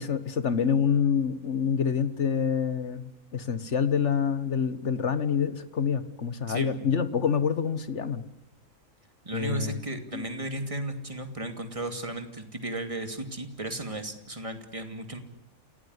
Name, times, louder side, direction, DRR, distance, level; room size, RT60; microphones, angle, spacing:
voice 1, 0.0-8.2 9.3-9.8 10.1-10.3, left 7 dB, 55° left, 12 dB, 1.7 m, -27 dB
voice 2, 6.5-6.9 9.2-15.2, right 1 dB, 20° right, 6 dB, 2.8 m, -35 dB
29.0 x 17.5 x 9.7 m, 0.81 s
omnidirectional pair, 1.5 m